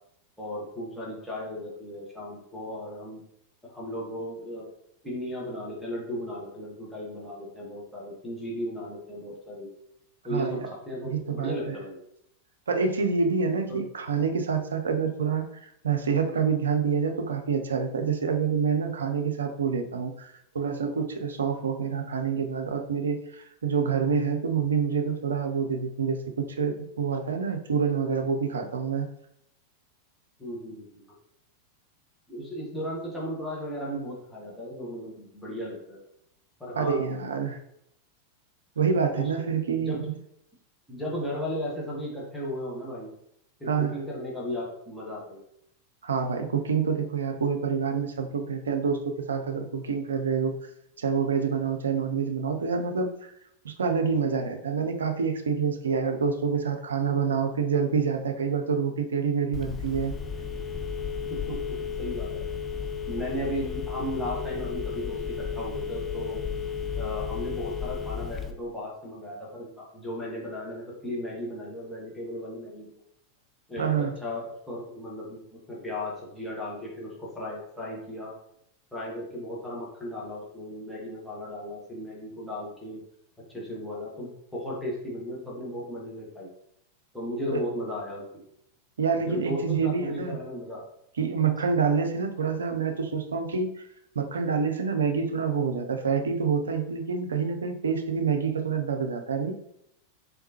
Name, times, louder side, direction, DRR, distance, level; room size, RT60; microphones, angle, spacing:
voice 1, 0.4-3.2 3.6-4.6 5.0-9.7 10.2-12.0 13.7-13.8 30.4-31.0 32.3-36.0 36.6-37.0 39.1-39.3 39.7-40.1 40.9-43.1 43.6-45.4 61.3-62.4 63.1-66.4 66.9-73.0 73.7-78.3 78.9-83.0 83.5-86.5 87.1-88.3 89.2-90.8, equal, 5° left, -5 dB, 1.3 m, -35 dB
voice 2, 10.3-10.6 11.0-11.8 12.7-29.1 36.7-37.6 38.8-40.1 43.7-43.9 46.0-50.5 51.0-53.3 53.6-60.1 73.8-74.1 87.5-87.6 89.0-90.3 91.2-93.8 94.2-99.5, right 6 dB, 70° right, 5 dB, 0.5 m, -27 dB
Telephone, 59.5-68.5, left 6 dB, 20° left, 0.4 m, -33 dB
3.8 x 3.5 x 2.8 m, 0.75 s
figure-of-eight pair, 90°, 0 cm